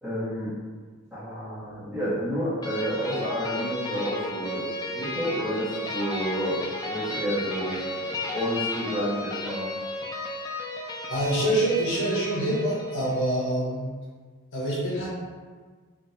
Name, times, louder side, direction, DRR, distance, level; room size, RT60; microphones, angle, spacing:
voice 1, 0.0-0.5 1.1-4.6 4.9-7.8 8.3-9.6, equal, ahead, -14 dB, 1.3 m, -30 dB
sound 1, 2.6-13.4, left 1 dB, 20° left, 0.3 m, -34 dB
voice 2, 11.1-13.9 14.5-15.1, right 1 dB, 60° left, -7 dB, 1.0 m, -25 dB
3.6 x 2.6 x 2.7 m, 1.5 s
head